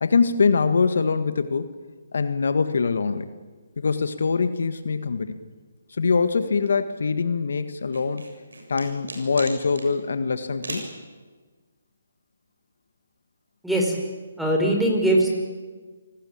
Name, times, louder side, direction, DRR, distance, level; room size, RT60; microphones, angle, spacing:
voice 1, 0.0-1.7 2.1-3.3 3.8-5.4 5.9-8.2 8.7-10.8, left 5 dB, 70° left, 10 dB, 1.7 m, -23 dB
sound 1, 7.9-9.9 10.6-10.9, right 2 dB, 85° right, 7.0 m, -36 dB
voice 2, 13.6-13.9 14.4-15.3, right 1 dB, ahead, 0 dB, 5.0 m, -21 dB
27.0 x 19.5 x 8.8 m, 1.4 s
hypercardioid pair, 150°, 0 cm